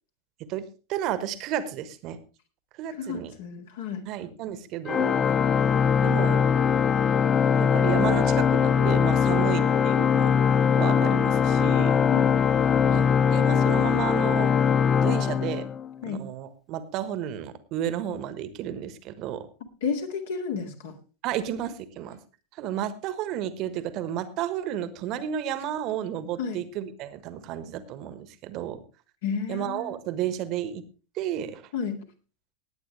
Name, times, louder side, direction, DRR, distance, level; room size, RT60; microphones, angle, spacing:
voice 1, 0.9-2.2 2.8-3.3 4.1-5.2 6.0-6.5 7.5-10.3 10.8-12.0 12.9-14.5 15.0-15.7 16.1-19.5 21.2-22.2 22.5-28.8 29.5-30.8 31.1-31.7, right 10 dB, 40° right, 14 dB, 1.3 m, -32 dB
voice 2, 2.9-4.0 9.3-9.6 12.1-12.3 16.0-16.2 19.8-20.9 26.4-26.6 29.2-30.0 31.7-32.0, left 6 dB, 55° left, 5 dB, 2.1 m, -32 dB
Organ, 4.9-16.0, left 7 dB, 25° left, 0.5 m, -21 dB
19.5 x 9.0 x 3.2 m, 0.34 s
figure-of-eight pair, 90°, 0 cm